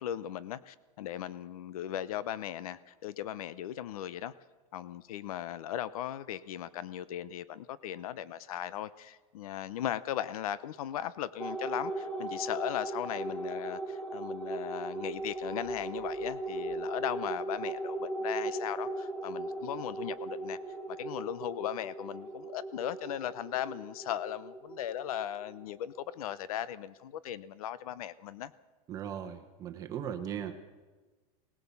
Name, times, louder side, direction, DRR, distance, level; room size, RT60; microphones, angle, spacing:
voice 1, 0.0-4.3 4.7-20.6 21.0-28.5, left 11 dB, 75° left, 17 dB, 0.8 m, -37 dB
sound 1, 11.4-26.2, right 2 dB, 5° left, 0.8 m, -38 dB
voice 2, 28.9-30.5, right 9 dB, 20° right, 6 dB, 1.0 m, -38 dB
20.5 x 19.5 x 7.1 m, 1.2 s
supercardioid pair, 180°, 19 cm